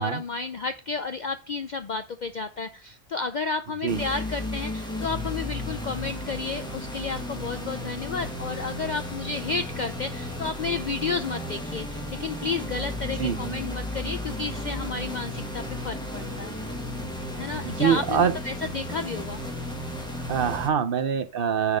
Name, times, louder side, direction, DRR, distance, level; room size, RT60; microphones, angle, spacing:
voice 1, 0.0-16.5 17.4-19.4, left 4 dB, 85° left, 9 dB, 0.4 m, -32 dB
sound 1, 3.9-20.7, left 1 dB, 5° left, 1.4 m, -34 dB
voice 2, 17.6-18.3 20.3-21.8, right 8 dB, 50° right, 12 dB, 0.7 m, -24 dB
9.9 x 4.1 x 5.1 m, 0.35 s
omnidirectional pair, 1.4 m